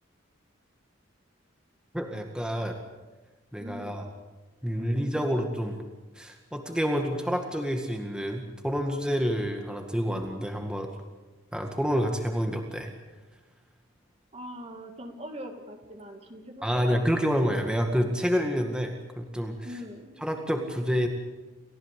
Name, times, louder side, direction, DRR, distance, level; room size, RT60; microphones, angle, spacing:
voice 1, 1.9-2.8 3.5-4.0 4.6-5.8 6.2-10.9 11.5-12.9 16.6-19.6 20.2-21.1, equal, 5° right, 3 dB, 2.0 m, -28 dB
voice 2, 3.6-4.1 4.7-5.1 14.3-17.0 19.6-20.2, equal, 30° right, 5 dB, 2.2 m, -42 dB
29.5 x 15.5 x 8.4 m, 1.2 s
head